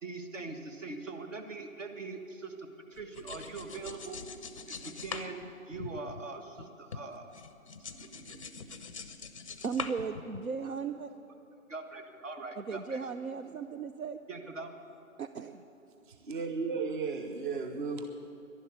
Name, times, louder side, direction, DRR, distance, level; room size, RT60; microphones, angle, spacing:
voice 1, 0.0-4.2 4.7-7.3 11.7-13.0 14.3-14.7, right 3 dB, 60° right, 4 dB, 1.8 m, -42 dB
sound 1, 2.9-6.7 6.9-10.7, left 4 dB, 25° left, 0.5 m, -43 dB
voice 2, 9.6-11.1 12.6-14.2 15.2-15.6, right 5 dB, 75° right, 9 dB, 0.7 m, -36 dB
voice 3, 16.1-18.1, right 4 dB, 35° right, 6 dB, 0.9 m, -34 dB
11.5 x 11.0 x 9.5 m, 3.0 s
figure-of-eight pair, 140°, 42 cm